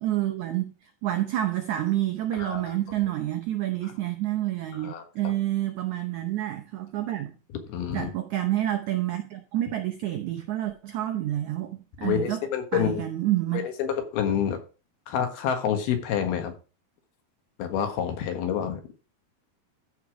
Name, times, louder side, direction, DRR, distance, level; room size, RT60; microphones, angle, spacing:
voice 1, 0.0-7.3 7.9-12.4 12.7-13.7, right 14 dB, 80° right, 1.7 m, -28 dB
voice 2, 2.4-2.7 4.8-5.3 7.7-8.1 12.0-13.0 13.5-14.6 15.1-16.5 17.6-18.8, left 8 dB, 80° left, 3.4 m, -28 dB
14.0 x 5.0 x 4.9 m
omnidirectional pair, 4.4 m